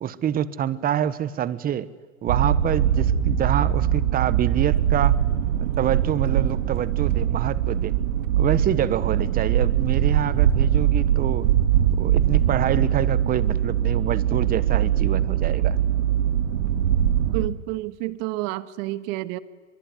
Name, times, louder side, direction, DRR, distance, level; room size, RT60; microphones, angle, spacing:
voice 1, 0.0-1.9 2.2-5.2 5.6-7.9 8.4-11.5 12.0-15.8, right 10 dB, 20° right, 16 dB, 1.1 m, -26 dB
sound 1, 2.3-17.5, right 10 dB, 65° right, 2.0 m, -22 dB
voice 2, 17.2-19.4, right 18 dB, 50° right, 14 dB, 1.6 m, -30 dB
24.0 x 23.5 x 9.7 m, 1.4 s
hypercardioid pair, 115°, 39 cm